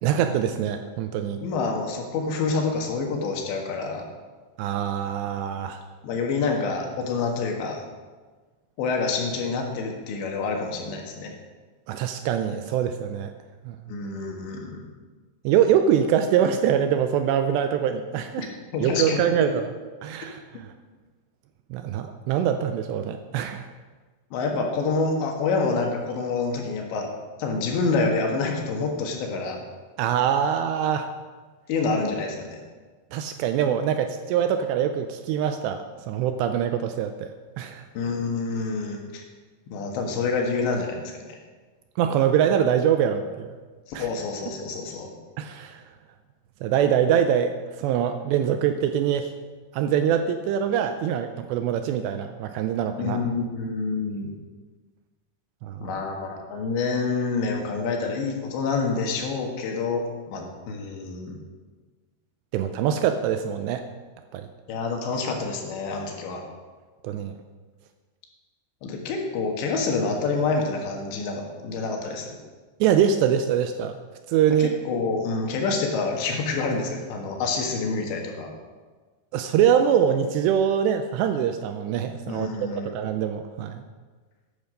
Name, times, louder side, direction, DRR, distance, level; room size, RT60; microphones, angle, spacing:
voice 1, 0.0-1.4 4.6-5.8 11.9-13.3 13.7-13.8 15.4-18.5 18.8-19.7 20.0-20.7 21.7-23.7 30.0-31.1 33.1-37.3 37.6-37.8 42.0-43.6 43.9-44.1 45.4-45.8 46.6-49.3 49.7-53.2 55.6-56.0 62.5-63.9 64.3-64.5 67.0-67.3 72.8-74.0 74.3-74.7 79.3-83.8, right 9 dB, 85° right, 8 dB, 2.6 m, -24 dB
voice 2, 1.4-4.0 6.0-7.8 8.8-11.3 13.9-14.8 18.4-18.5 18.7-19.2 24.3-27.1 27.4-29.6 31.7-32.6 38.0-39.2 39.7-41.4 43.9-45.1 53.0-54.3 55.8-61.4 64.7-66.4 68.8-72.4 74.6-78.5 82.3-83.0, left 4 dB, 75° left, 1 dB, 3.8 m, -27 dB
13.0 x 10.5 x 5.1 m, 1.4 s
omnidirectional pair, 5.4 m